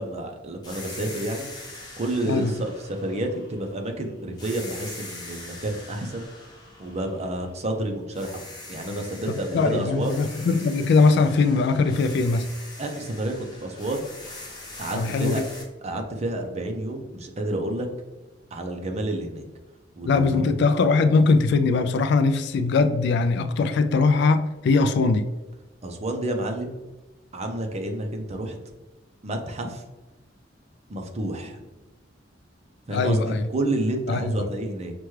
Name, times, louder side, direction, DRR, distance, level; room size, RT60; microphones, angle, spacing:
voice 1, 0.0-1.5 2.0-6.3 6.8-8.3 8.7-10.2 12.8-14.1 14.8-15.4 15.8-17.9 18.5-19.4 20.0-20.5 25.8-26.8 27.3-28.6 29.2-29.8 30.9-31.6 32.9-34.9, right 1 dB, 35° right, 0.5 m, -29 dB
sound 1, 0.6-3.9 4.4-7.7 8.1-15.6, left 2 dB, 20° left, 1.0 m, -42 dB
voice 2, 9.5-12.5 14.9-15.4 20.1-25.3 32.9-33.4 34.1-34.5, left 4 dB, 65° left, 0.3 m, -21 dB
5.7 x 2.3 x 3.1 m
head